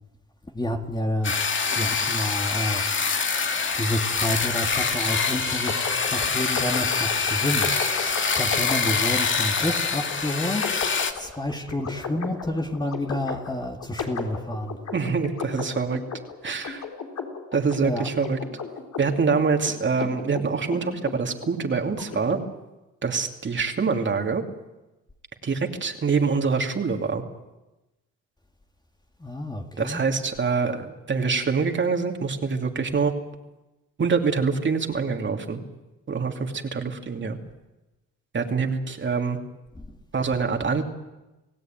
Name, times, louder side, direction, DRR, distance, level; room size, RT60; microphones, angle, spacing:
voice 1, 0.5-1.4 1.7-2.9 3.8-7.7 8.4-10.8 11.2-14.8 17.8-18.1 29.2-30.0 39.8-39.9, left 1 dB, 15° left, 2.3 m, -29 dB
sound 1, 1.2-11.1, left 5 dB, 40° left, 2.2 m, -25 dB
sound 2, 5.7-22.4, left 5 dB, 65° left, 4.4 m, -35 dB
voice 2, 14.9-16.0 16.4-16.8 17.5-18.4 19.0-22.4 23.0-24.4 25.4-27.2 29.8-33.1 34.0-35.6 36.1-37.4 38.3-39.4 40.1-40.8, right 5 dB, 40° right, 2.8 m, -25 dB
27.5 x 17.0 x 9.1 m
cardioid pair, 90°, 30 cm